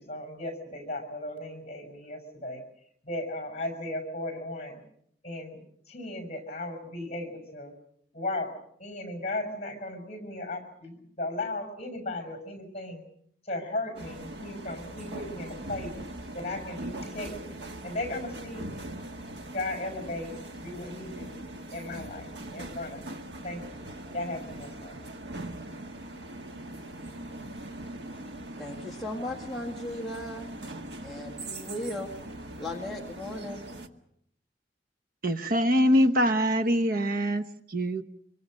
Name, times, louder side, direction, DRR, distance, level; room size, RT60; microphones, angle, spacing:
voice 1, 0.0-2.6 3.0-4.8 5.2-7.7 8.1-8.5 8.8-13.0 13.4-15.9 16.3-17.6 17.8-18.7 19.5-21.4 21.7-25.0, left 2 dB, 35° left, 6 dB, 5.7 m, -36 dB
sound 1, 13.9-33.9, right 1 dB, 70° right, 1.8 m, -41 dB
voice 2, 28.6-30.5 31.0-32.1 32.6-33.6, left 1 dB, ahead, -4 dB, 1.9 m, -36 dB
voice 3, 35.2-38.0, equal, 55° right, 9 dB, 1.0 m, -24 dB
25.5 x 24.0 x 6.4 m, 0.71 s
head